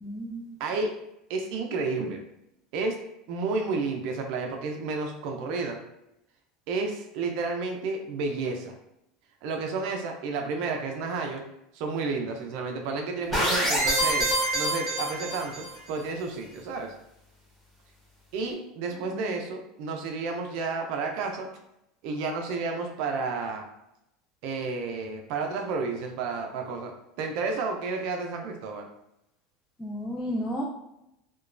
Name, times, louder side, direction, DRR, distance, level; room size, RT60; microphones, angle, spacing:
voice 1, 0.0-0.6 18.9-19.3 29.8-30.7, equal, 15° left, -3 dB, 0.4 m, -33 dB
voice 2, 0.6-0.9 1.3-2.2 2.7-3.0 3.3-5.8 6.7-8.7 9.4-11.4 11.7-14.3 14.5-16.9 18.3-21.5 22.0-23.7 24.4-26.9 27.2-28.9, right 4 dB, 65° right, 3 dB, 0.4 m, -31 dB
sound 1, 13.3-15.7, right 1 dB, 5° right, 1.2 m, -26 dB
2.9 x 2.2 x 2.4 m, 0.83 s
supercardioid pair, 125°, 0 cm